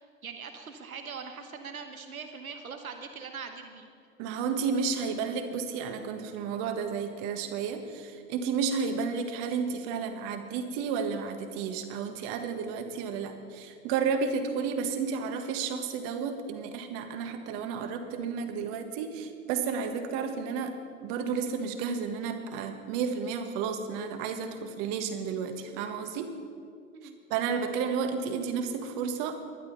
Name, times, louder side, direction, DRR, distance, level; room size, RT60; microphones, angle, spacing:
voice 1, 0.0-3.9 26.9-27.2, right 5 dB, 85° right, 6 dB, 1.2 m, -42 dB
voice 2, 4.2-20.8 21.0-26.3 27.3-29.3, right 6 dB, 50° right, 6 dB, 1.7 m, -32 dB
20.0 x 11.5 x 4.1 m, 2.3 s
hypercardioid pair, 90°, 41 cm